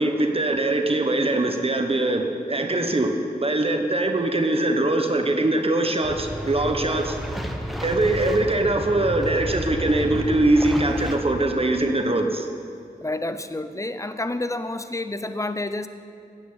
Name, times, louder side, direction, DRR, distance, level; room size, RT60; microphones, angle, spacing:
voice 1, 0.0-3.1 3.4-7.2 7.8-12.5, right 2 dB, 35° right, 4 dB, 1.1 m, -22 dB
sound 1, 6.0-11.2, equal, ahead, 1.2 m, -31 dB
voice 2, 13.0-15.9, left 2 dB, 20° left, 10 dB, 0.7 m, -29 dB
16.0 x 7.0 x 8.6 m, 2.4 s
wide cardioid pair, 100°, 16 cm